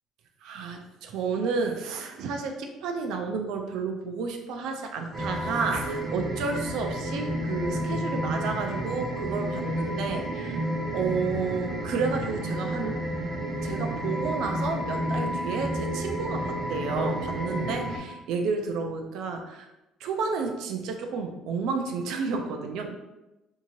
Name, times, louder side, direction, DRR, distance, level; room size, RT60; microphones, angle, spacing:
voice 1, 0.4-10.6 10.9-13.0 13.6-19.7 20.0-23.0, right 4 dB, 75° right, 4 dB, 0.4 m, -31 dB
sound 1, 5.1-18.0, equal, 25° right, 0.7 m, -31 dB
2.8 x 2.7 x 2.6 m, 0.98 s
supercardioid pair, 95°, 0 cm